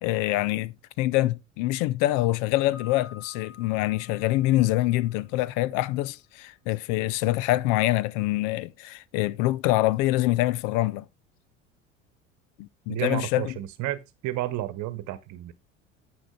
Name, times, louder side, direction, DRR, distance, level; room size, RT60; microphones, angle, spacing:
voice 1, 0.0-11.0 12.6-13.5, left 17 dB, 50° left, 0.6 m, -25 dB
Piano, 2.7-5.6, left 6 dB, 5° left, 2.7 m, -50 dB
voice 2, 12.9-15.5, right 15 dB, 50° right, 1.2 m, -31 dB
10.0 x 6.3 x 3.9 m
figure-of-eight pair, 65°, 38 cm